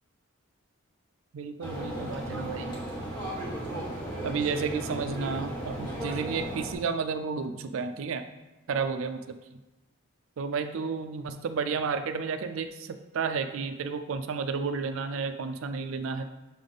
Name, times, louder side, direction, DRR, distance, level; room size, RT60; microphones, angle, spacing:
voice 1, 1.3-2.8 4.2-8.2 8.7-9.3 10.4-16.2, right 5 dB, 70° right, 8 dB, 0.4 m, -32 dB
sound 1, 1.6-6.7, right 1 dB, 20° left, 1.2 m, -35 dB
6.9 x 3.5 x 3.9 m, 1.1 s
head